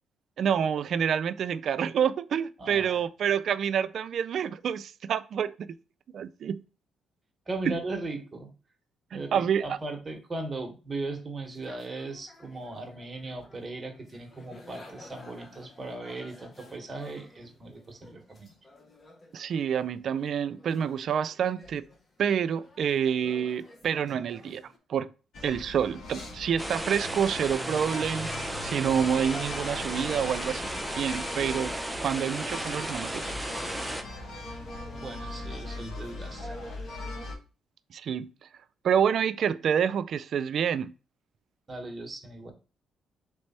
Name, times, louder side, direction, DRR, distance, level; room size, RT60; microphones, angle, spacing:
voice 1, 0.4-5.7 6.1-6.6 7.7-7.8 9.1-9.8 19.3-21.8 22.2-25.1 25.4-31.8 32.0-33.3 37.9-38.5 38.8-40.9, right 8 dB, 65° right, 0.3 m, -28 dB
voice 2, 2.6-3.0 7.5-8.5 9.1-18.5 34.9-36.5 41.7-42.5, right 2 dB, 25° right, 1.1 m, -38 dB
sound 1, 11.5-24.8, left 2 dB, 35° left, 0.8 m, -53 dB
sound 2, 25.3-37.4, left 2 dB, 60° left, 1.1 m, -39 dB
sound 3, 26.6-34.0, right 1 dB, 5° right, 0.5 m, -35 dB
3.3 x 3.3 x 4.1 m
cardioid pair, 90°, 0 cm